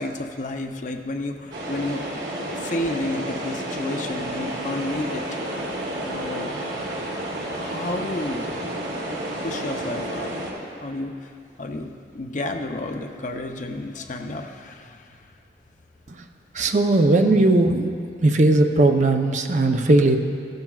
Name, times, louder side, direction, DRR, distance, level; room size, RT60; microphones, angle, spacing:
voice 1, 0.0-2.1 2.5-5.3 6.0-6.5 7.6-8.5 9.4-10.3 10.8-11.3 11.6-15.2, left 2 dB, 45° left, 4 dB, 0.6 m, -31 dB
sound 1, 1.5-10.5, right 1 dB, 85° right, 2.7 m, -30 dB
voice 2, 16.5-17.9 18.2-20.2, right 2 dB, 40° right, 5 dB, 0.6 m, -18 dB
16.0 x 13.0 x 2.3 m, 2.4 s
head